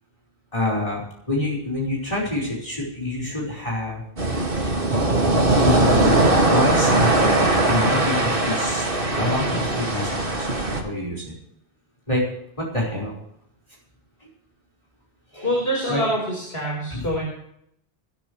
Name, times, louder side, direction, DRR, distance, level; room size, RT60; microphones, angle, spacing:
voice 1, 0.5-4.0 5.5-11.3 12.1-12.2 12.6-13.1 15.3-15.5 15.9-16.0 16.9-17.0, left 1 dB, 30° left, -4 dB, 5.0 m, -27 dB
sound 1, 4.2-10.8, right 2 dB, 55° right, 2.5 m, -20 dB
voice 2, 15.4-17.2, equal, 65° left, -3 dB, 4.9 m, -25 dB
21.5 x 13.0 x 3.3 m, 0.73 s
omnidirectional pair, 1.1 m